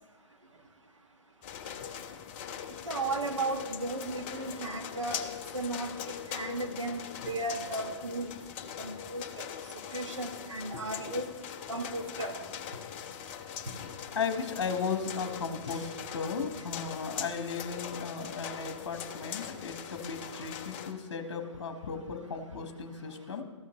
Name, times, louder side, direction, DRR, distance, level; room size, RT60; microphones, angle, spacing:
sound 1, 1.4-20.9, left 8 dB, 25° left, 0.5 m, -41 dB
voice 1, 2.8-5.3 5.5-8.3 8.8-9.5 9.9-11.3 11.7-12.4 15.7-15.8, right 2 dB, 75° right, 4 dB, 1.4 m, -35 dB
voice 2, 14.1-23.4, left 5 dB, 50° left, 6 dB, 1.2 m, -36 dB
14.0 x 5.8 x 3.0 m, 1.2 s
figure-of-eight pair, 130°, 16 cm